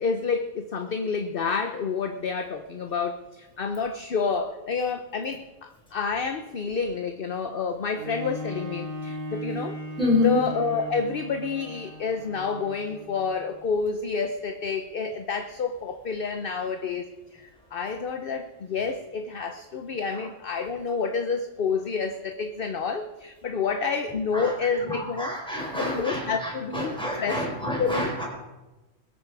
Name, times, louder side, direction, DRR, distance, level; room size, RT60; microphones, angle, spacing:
voice 1, 0.0-9.8 10.2-17.1 17.3-25.4 25.7-27.5 27.8-28.1, left 5 dB, 50° left, 7 dB, 0.9 m, -29 dB
Bowed string instrument, 7.9-13.6 14.2-14.3, equal, 45° right, 2.3 m, -38 dB
voice 2, 10.0-10.4 24.3-24.5 24.9-28.3, left 2 dB, 5° left, -2 dB, 4.7 m, -27 dB
22.0 x 8.4 x 4.8 m, 1.1 s
omnidirectional pair, 1.4 m